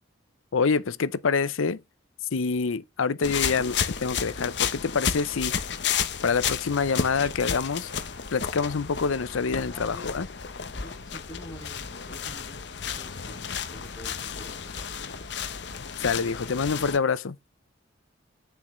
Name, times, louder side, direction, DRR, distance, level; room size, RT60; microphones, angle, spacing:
voice 1, 0.5-1.8 2.3-5.6 6.2-7.9 8.3-10.3 16.0-17.4, left 5 dB, 85° left, 0.6 m, -26 dB
sound 1, 3.2-17.0, left 7 dB, 55° left, 0.9 m, -32 dB
voice 2, 9.7-10.1 10.8-13.4 13.7-15.2, left 1 dB, 20° left, 2.4 m, -47 dB
8.7 x 7.1 x 3.2 m
head